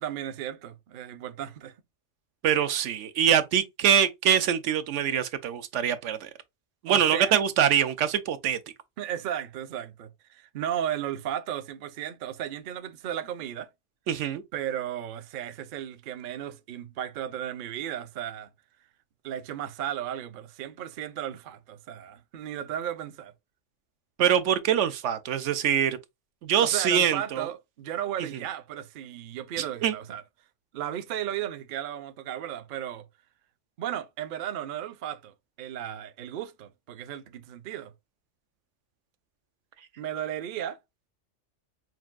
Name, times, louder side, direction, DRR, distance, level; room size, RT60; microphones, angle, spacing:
voice 1, 0.0-1.7 6.9-7.3 9.0-13.7 14.5-18.5 19.2-23.3 26.6-30.2 30.7-33.1 33.8-37.9 40.0-40.8, right 10 dB, 60° right, 0.6 m, -35 dB
voice 2, 2.4-6.3 6.8-8.6 14.1-14.4 24.2-26.0 26.4-27.5 29.6-29.9, right 9 dB, 80° right, 0.9 m, -24 dB
5.9 x 2.5 x 2.3 m
omnidirectional pair, 1.2 m